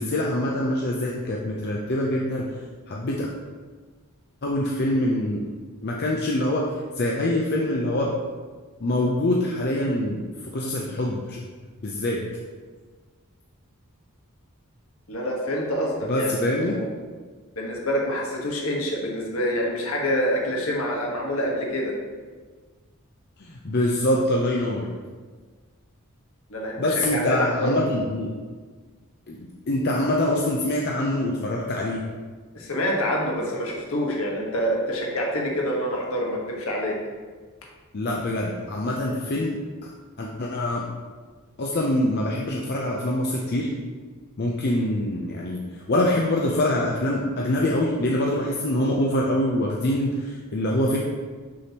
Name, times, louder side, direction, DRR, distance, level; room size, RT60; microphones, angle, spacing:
voice 1, 0.0-2.5 2.9-3.3 4.4-5.5 5.8-8.1 8.8-10.2 10.5-11.4 11.8-12.2 16.1-16.7 23.4-24.9 26.8-28.3 29.3-32.0 37.9-39.6 40.2-40.8 41.6-43.7 44.4-51.0, left 1 dB, 45° left, -2 dB, 0.6 m, -24 dB
voice 2, 15.1-16.9 17.6-22.0 26.5-27.7 32.5-37.0, equal, 70° left, -2 dB, 1.3 m, -26 dB
6.3 x 6.0 x 2.9 m, 1.5 s
head